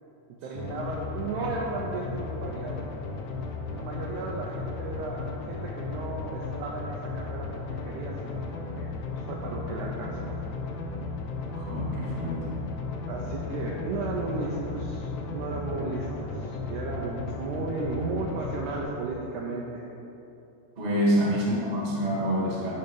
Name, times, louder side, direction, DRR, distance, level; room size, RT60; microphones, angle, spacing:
voice 1, 0.3-2.9 3.7-10.4 13.1-19.9, right 3 dB, 80° right, -2 dB, 1.8 m, -35 dB
sound 1, 0.6-18.8, left 3 dB, 80° left, 1.6 m, -35 dB
voice 2, 11.5-12.4 20.8-22.7, equal, 30° right, -5 dB, 1.4 m, -27 dB
11.0 x 4.2 x 5.2 m, 2.9 s
omnidirectional pair, 4.0 m